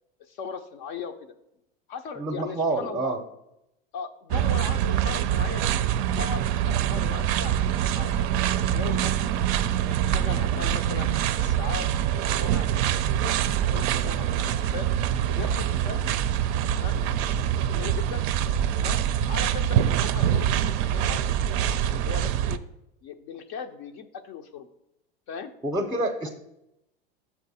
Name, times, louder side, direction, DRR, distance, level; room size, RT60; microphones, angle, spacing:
voice 1, 0.2-1.3 1.9-3.2 3.9-5.7 6.1-7.5 8.0-9.3 9.8-12.7 13.2-14.9 15.3-16.0 16.7-18.3 18.8-22.6 23.0-24.7 25.3-25.5 26.2-26.3, left 6 dB, 55° left, 5 dB, 0.6 m, -39 dB
voice 2, 2.2-3.2 25.6-26.3, right 2 dB, 10° right, 2 dB, 0.6 m, -27 dB
sound 1, 4.3-22.6, right 10 dB, 50° right, 0.4 m, -25 dB
6.8 x 4.5 x 4.1 m, 0.85 s
hypercardioid pair, 100°, 29 cm